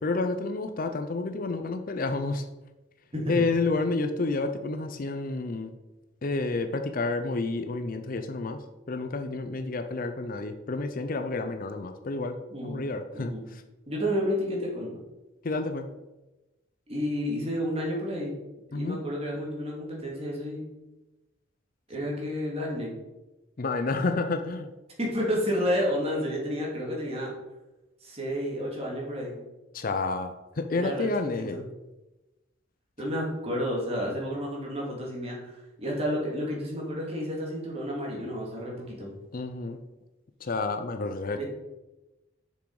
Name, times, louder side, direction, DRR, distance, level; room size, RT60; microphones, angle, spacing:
voice 1, 0.0-2.4 3.3-5.7 6.2-8.6 8.9-12.3 12.6-13.6 15.4-15.9 18.7-19.0 23.6-24.7 29.7-31.6 39.3-39.8 40.4-41.4, left 3 dB, 45° left, 7 dB, 0.5 m, -30 dB
voice 2, 3.1-3.4 12.5-12.8 13.1-13.4 13.9-15.0 16.9-18.3 18.7-20.7 21.9-23.0 25.0-27.3 28.0-29.4 30.7-31.1 31.4-31.6 33.0-39.1 41.3-41.4, equal, 30° right, -3 dB, 2.3 m, -31 dB
6.9 x 6.2 x 4.8 m, 1.0 s
head